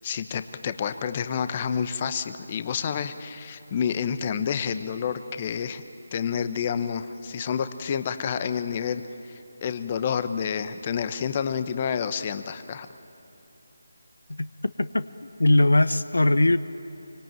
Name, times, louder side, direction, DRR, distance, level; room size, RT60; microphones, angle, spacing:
voice 1, 0.0-5.8 6.1-12.9, left 7 dB, 30° left, 11 dB, 1.0 m, -29 dB
voice 2, 14.8-16.6, left 1 dB, 75° left, 14 dB, 0.8 m, -21 dB
26.0 x 24.5 x 9.2 m, 3.0 s
figure-of-eight pair, 155°, 0 cm